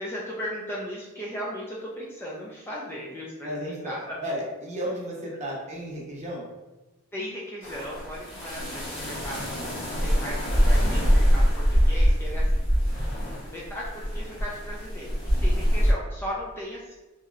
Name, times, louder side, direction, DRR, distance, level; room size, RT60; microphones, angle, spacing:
voice 1, 0.0-4.2 7.1-9.6 10.0-13.1 13.5-16.9, equal, 10° left, -5 dB, 0.3 m, -37 dB
voice 2, 3.4-3.9 4.2-6.4, equal, 35° right, -4 dB, 0.8 m, -33 dB
sound 1, 7.6-15.9, equal, 60° left, 1.4 m, -24 dB
3.0 x 2.7 x 2.4 m, 1.1 s
head